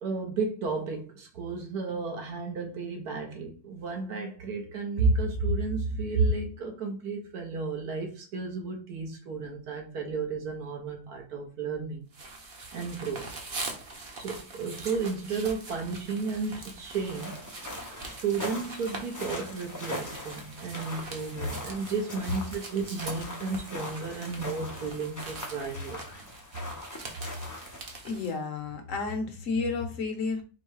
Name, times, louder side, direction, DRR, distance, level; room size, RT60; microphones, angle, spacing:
voice 1, 0.0-12.1 12.7-13.3 14.1-17.4 18.2-26.0, right 4 dB, 75° right, 1.4 m, -32 dB
sound 1, 12.1-28.3, right 3 dB, 40° right, 0.9 m, -43 dB
sound 2, 16.9-27.9, left 1 dB, 20° left, 0.4 m, -41 dB
voice 2, 28.0-30.4, left 4 dB, 60° left, 1.2 m, -31 dB
4.5 x 2.2 x 4.6 m
omnidirectional pair, 1.7 m